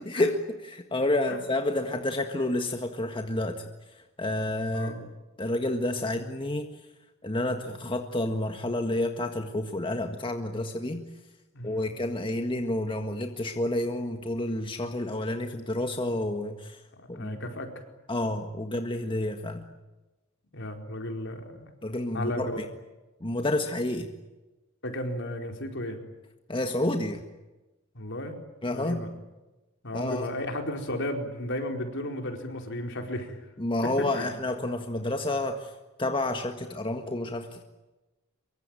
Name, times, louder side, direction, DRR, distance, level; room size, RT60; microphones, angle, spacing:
voice 1, 0.0-3.6 4.2-5.0 5.4-6.7 7.2-11.0 11.6-16.8 17.1-17.4 18.1-19.6 21.8-22.7 23.2-24.1 26.5-27.2 28.6-29.0 29.9-30.3 33.6-35.7 36.0-37.6, left 1 dB, 25° left, 5 dB, 1.7 m, -29 dB
voice 2, 4.7-5.1 11.5-12.0 16.9-17.7 20.5-21.7 22.1-22.6 24.8-26.0 27.9-28.4 28.7-29.1 29.8-33.3 34.0-34.3, left 1 dB, 60° left, 4 dB, 4.7 m, -34 dB
25.0 x 23.5 x 9.0 m, 1.1 s
head